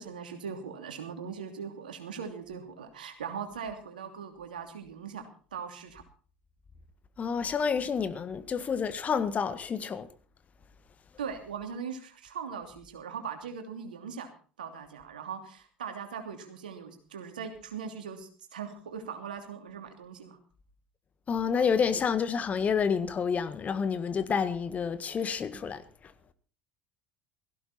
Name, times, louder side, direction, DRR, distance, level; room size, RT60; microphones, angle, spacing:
voice 1, 0.0-6.0 11.2-14.3 14.6-20.4 21.5-21.7, right 6 dB, 75° right, 2.9 m, -40 dB
voice 2, 7.2-10.1 21.3-25.8, left 6 dB, 30° left, 1.6 m, -29 dB
17.5 x 15.5 x 4.4 m
figure-of-eight pair, 65°, 5 cm